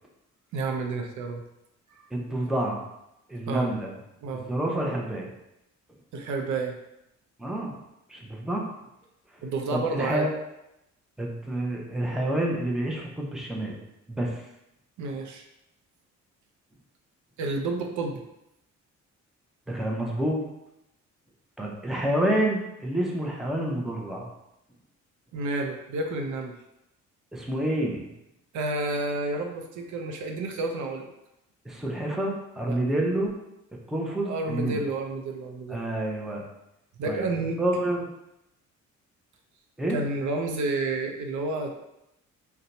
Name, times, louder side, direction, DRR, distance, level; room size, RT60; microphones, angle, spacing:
voice 1, 0.5-1.4 3.5-3.7 4.2-4.5 6.1-6.7 9.4-10.3 15.0-15.4 17.4-18.2 25.3-26.5 28.5-31.1 32.7-32.8 34.3-35.8 37.0-37.6 39.9-41.7, right 3 dB, 75° right, 3 dB, 0.5 m, -30 dB
voice 2, 2.1-2.8 3.3-3.9 4.3-5.3 7.4-7.7 8.1-8.7 9.7-10.3 11.2-13.8 14.1-14.4 19.7-20.4 21.6-24.3 27.3-28.1 31.6-33.3 33.9-34.8 35.7-36.4 37.1-38.0 39.8-40.0, right 1 dB, ahead, -2 dB, 0.6 m, -28 dB
2.7 x 2.2 x 3.9 m, 0.86 s
cardioid pair, 90°, 30 cm